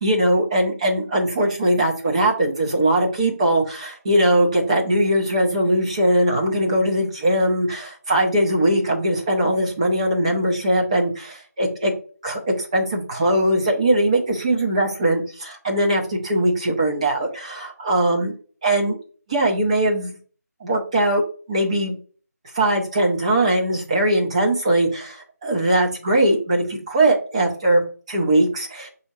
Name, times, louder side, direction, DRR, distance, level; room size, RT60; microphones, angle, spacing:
voice 1, 0.0-11.9 12.2-18.3 18.6-19.0 19.3-20.2 20.6-21.2 21.5-22.0 22.5-28.9, right 1 dB, 25° right, 0 dB, 0.6 m, -20 dB
6.0 x 2.8 x 2.7 m, 0.42 s
figure-of-eight pair, 165°, 9 cm